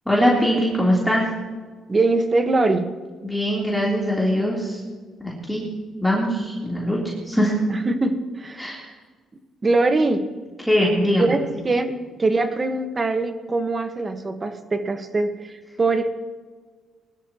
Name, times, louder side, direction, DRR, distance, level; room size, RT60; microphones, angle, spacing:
voice 1, 0.1-1.3 3.2-4.8 5.2-5.7 6.0-7.0 7.2-7.5 8.6-8.9 10.6-11.3, equal, 5° left, -5 dB, 3.4 m, -21 dB
voice 2, 1.9-2.9 7.7-8.8 9.6-10.2 11.2-15.5 15.8-16.1, right 2 dB, 30° right, 8 dB, 1.4 m, -22 dB
21.5 x 13.0 x 3.0 m, 1.4 s
cardioid pair, 90°, 0 cm